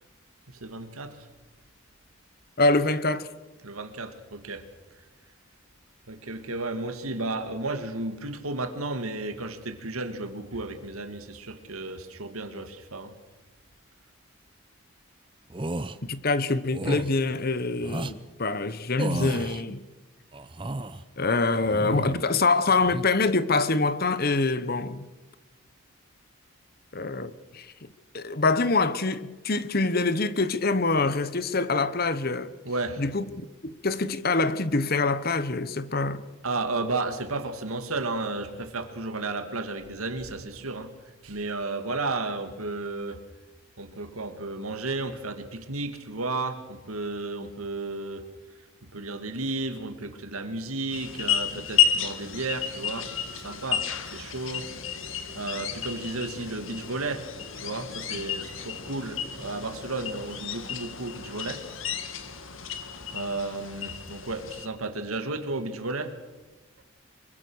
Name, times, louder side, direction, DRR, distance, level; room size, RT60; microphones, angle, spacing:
voice 1, 0.5-1.3 3.6-4.7 6.1-13.1 32.6-33.0 36.4-40.9 41.2-43.2 43.8-48.3 48.8-54.7 55.3-61.7 63.1-66.2, right 2 dB, 90° right, 2.4 m, -33 dB
voice 2, 2.6-3.3 16.1-19.9 21.2-25.1 26.9-27.9 28.1-32.5 33.0-33.2 33.6-36.2, left 3 dB, 45° left, 1.0 m, -25 dB
sound 1, 15.5-16.0 16.7-17.1 17.8-18.2 19.0-19.6 20.3-21.0 21.6-22.3 22.7-23.1, right 2 dB, 25° right, 0.8 m, -33 dB
sound 2, 50.9-64.7, left 8 dB, 70° left, 1.9 m, -32 dB
25.5 x 23.0 x 6.4 m
head